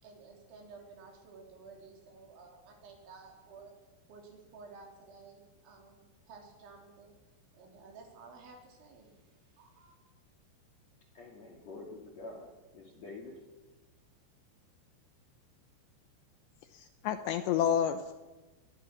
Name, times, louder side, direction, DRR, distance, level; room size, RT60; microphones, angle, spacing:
voice 1, 0.0-3.7 4.1-7.1 7.5-10.0, right 4 dB, 70° right, 0 dB, 5.9 m, -53 dB
voice 2, 11.1-13.4, left 2 dB, 45° left, 1 dB, 2.6 m, -47 dB
voice 3, 16.7-18.1, left 9 dB, 75° left, 9 dB, 2.7 m, -30 dB
21.0 x 21.0 x 6.1 m, 1.1 s
omnidirectional pair, 5.7 m